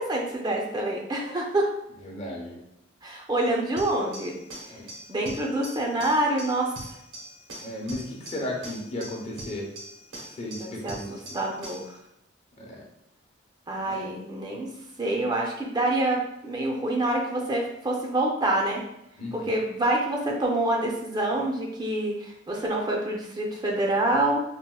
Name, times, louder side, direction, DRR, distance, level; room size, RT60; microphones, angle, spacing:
voice 1, 0.0-1.7 3.0-4.4 5.1-6.7 10.6-11.0 11.3-11.8 13.7-14.7 15.0-18.8 19.3-24.4, right 1 dB, 20° right, 0 dB, 0.4 m, -26 dB
voice 2, 2.0-2.6 4.7-4.8 7.6-9.7 10.3-11.4 12.6-12.8 13.8-14.0 19.2-19.5, left 1 dB, 35° left, -2 dB, 0.7 m, -35 dB
sound 1, 3.8-12.0, right 1 dB, 90° right, 0.9 m, -42 dB
4.1 x 2.1 x 2.2 m, 0.83 s
head